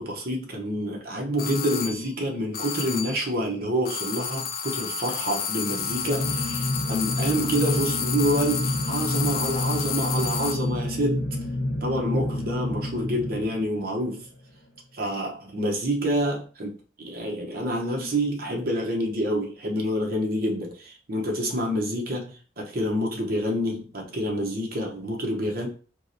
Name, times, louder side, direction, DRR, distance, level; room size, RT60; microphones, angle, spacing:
voice 1, 0.0-11.2 11.8-14.2 14.9-25.7, equal, 50° right, 0.8 m, -27 dB
sound 1, 1.4-2.1 2.5-3.3 3.8-10.7, left 7 dB, 50° left, 0.4 m, -31 dB
sound 2, 5.6-14.0, left 1 dB, 80° left, 0.7 m, -29 dB
4.5 x 2.1 x 2.6 m
head